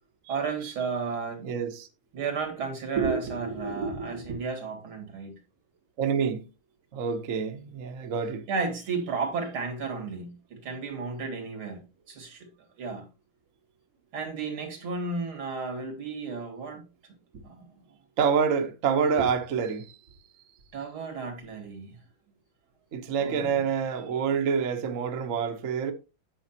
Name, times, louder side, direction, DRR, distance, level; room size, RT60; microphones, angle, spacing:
voice 1, 0.3-1.5 2.1-5.3 8.5-12.5 12.8-13.0 14.1-16.8 17.4-17.7 20.7-22.0 23.2-23.6, right 4 dB, 90° right, 3.3 m, -32 dB
voice 2, 1.4-1.9 6.0-6.4 6.9-8.5 18.2-20.0 22.9-25.9, right 6 dB, 50° right, 1.2 m, -27 dB
9.1 x 7.7 x 2.9 m
omnidirectional pair, 2.2 m